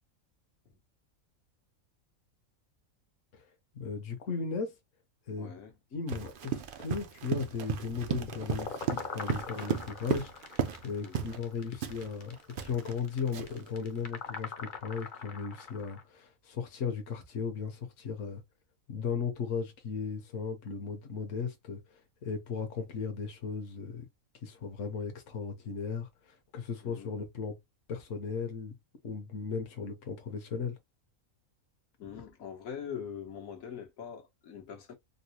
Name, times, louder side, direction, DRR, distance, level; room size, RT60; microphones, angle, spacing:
voice 1, 3.7-4.7 5.3-5.5 5.9-10.6 10.8-18.4 18.9-24.0 24.4-27.6 27.9-28.8 29.0-30.8, left 5 dB, 65° left, 1.2 m, -36 dB
voice 2, 5.4-5.7 11.0-11.3 26.8-27.1 32.0-34.9, left 7 dB, 80° left, 1.4 m, -43 dB
Run, 6.1-10.9 11.1-11.4 11.8-13.7, right 8 dB, 55° right, 0.6 m, -35 dB
sound 1, 7.9-16.0, left 5 dB, 50° left, 0.7 m, -42 dB
3.9 x 2.1 x 2.8 m
omnidirectional pair, 1.4 m